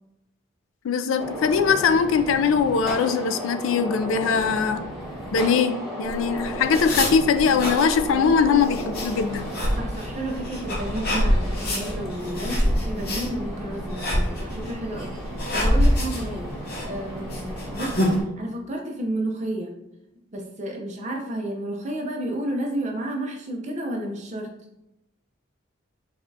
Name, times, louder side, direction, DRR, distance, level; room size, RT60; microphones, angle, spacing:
voice 1, 0.8-4.9 5.3-9.4, left 6 dB, 70° left, 10 dB, 0.3 m, -21 dB
Gunshot gunfire, 1.2-18.2, equal, ahead, 1.1 m, -34 dB
sound 1, 6.1-18.1, equal, 50° left, 0.8 m, -26 dB
voice 2, 9.7-16.5 16.8-19.7 20.3-24.5, right 1 dB, 35° right, 1 dB, 0.6 m, -31 dB
4.9 x 2.3 x 2.7 m, 0.87 s
head